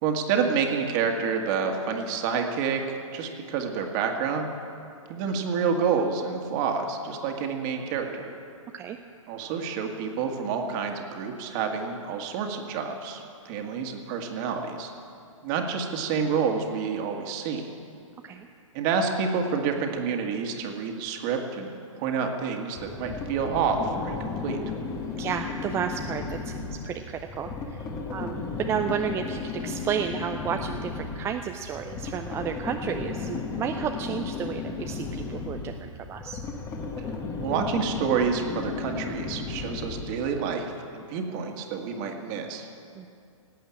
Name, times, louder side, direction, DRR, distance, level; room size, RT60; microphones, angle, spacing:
voice 1, 0.0-2.8 3.1-4.5 5.1-8.3 9.3-14.9 15.4-17.7 18.7-21.7 22.0-24.6 37.4-42.7, right 6 dB, 35° right, 3 dB, 2.0 m, -28 dB
sound 1, 22.8-40.4, left 4 dB, 20° left, 1.4 m, -34 dB
voice 2, 25.2-27.8 28.1-36.4 43.0-43.1, right 8 dB, 15° right, 5 dB, 0.5 m, -32 dB
18.0 x 8.5 x 8.7 m, 2.5 s
figure-of-eight pair, 125°, 17 cm